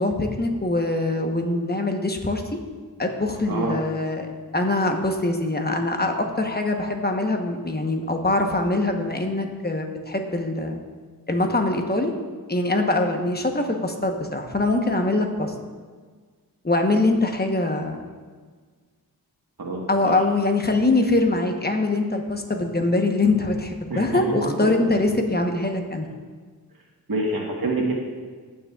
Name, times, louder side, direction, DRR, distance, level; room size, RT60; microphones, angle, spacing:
voice 1, 0.0-2.4 3.0-10.8 11.3-12.1 12.5-15.5 16.6-18.1 19.9-26.1, left 2 dB, 25° left, 4 dB, 1.0 m, -23 dB
voice 2, 19.6-20.1 23.9-24.5 27.1-27.9, right 2 dB, 70° right, -2 dB, 1.4 m, -26 dB
16.0 x 6.4 x 2.4 m, 1.5 s
wide cardioid pair, 55°, 37 cm